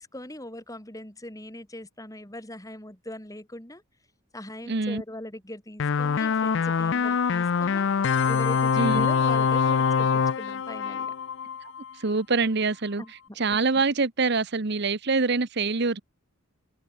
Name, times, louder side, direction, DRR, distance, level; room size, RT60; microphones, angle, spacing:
voice 1, 0.0-3.8 4.3-7.9 8.3-11.1 13.0-13.4, left 1 dB, 15° left, 3.7 m, -40 dB
voice 2, 4.7-5.0 8.8-9.1 11.6-13.0 13.4-16.0, right 4 dB, 55° right, 1.0 m, -25 dB
sound 1, 5.8-11.9, left 6 dB, 60° left, 0.4 m, -24 dB
head